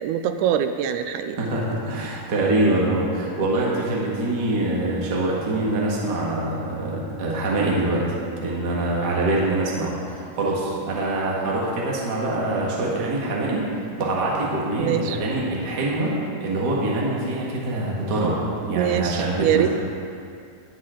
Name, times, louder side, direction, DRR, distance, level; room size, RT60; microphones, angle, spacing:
voice 1, 0.0-1.4 3.2-3.5 14.8-15.2 18.8-19.7, right 9 dB, 80° right, 8 dB, 1.8 m, -23 dB
voice 2, 1.3-13.7 14.0-16.1 16.4-18.4 18.7-19.7, right 2 dB, 40° right, -4 dB, 1.8 m, -24 dB
20.5 x 7.5 x 3.8 m, 2.4 s
omnidirectional pair, 3.9 m